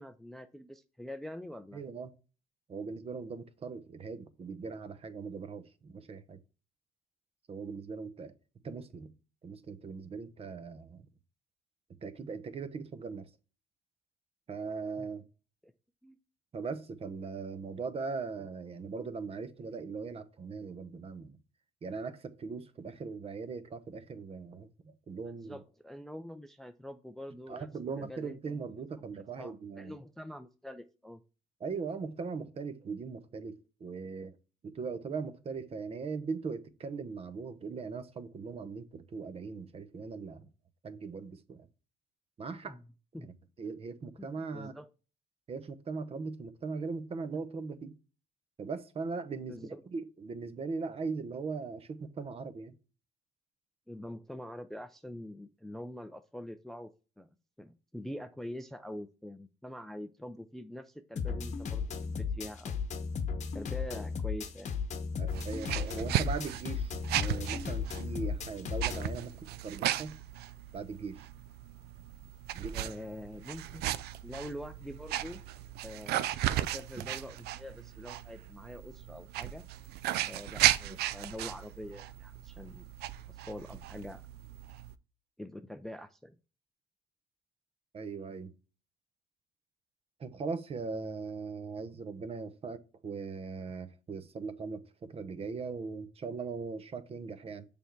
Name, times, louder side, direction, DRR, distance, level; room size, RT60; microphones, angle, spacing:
voice 1, 0.0-1.8 15.0-15.1 15.6-15.7 16.0-16.2 25.2-27.7 28.0-28.8 29.3-31.2 42.6-42.8 43.1-43.3 44.2-44.9 49.5-49.8 53.9-56.9 57.2-57.3 57.6-62.8 63.5-64.7 72.7-75.4 75.8-76.3 76.5-79.6 80.2-82.9 83.3-84.3 85.4-86.4, left 1 dB, ahead, 0.4 m, -45 dB
voice 2, 1.7-2.1 2.7-6.4 7.5-8.3 8.6-9.1 9.4-11.1 12.0-13.3 14.5-15.2 16.5-21.4 21.8-25.6 27.5-29.9 31.6-33.5 33.8-34.4 34.6-40.5 40.8-41.7 42.4-42.8 43.2-44.7 45.5-47.9 48.6-52.7 65.2-69.3 69.6-70.2 70.7-71.2 72.5-72.9 73.8-73.9 87.9-88.5 90.2-97.7, right 4 dB, 35° right, 0.7 m, -39 dB
sound 1, 61.2-69.2, left 5 dB, 45° left, 1.0 m, -35 dB
sound 2, 65.3-85.0, right 13 dB, 75° right, 0.4 m, -36 dB
6.9 x 3.4 x 4.5 m
cardioid pair, 110°, 17 cm